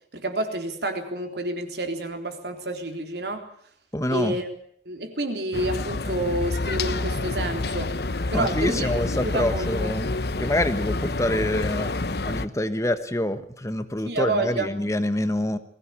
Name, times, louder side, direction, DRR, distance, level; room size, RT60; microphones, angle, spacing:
voice 1, 0.1-3.5 4.1-4.5 4.9-7.9 8.3-9.9 14.0-14.7, right 2 dB, 70° right, 5 dB, 3.7 m, -29 dB
voice 2, 3.9-4.4 8.3-15.6, left 1 dB, 15° left, 10 dB, 1.2 m, -26 dB
sound 1, 5.5-12.5, left 2 dB, 65° left, 1.0 m, -28 dB
21.5 x 16.5 x 8.6 m, 0.63 s
head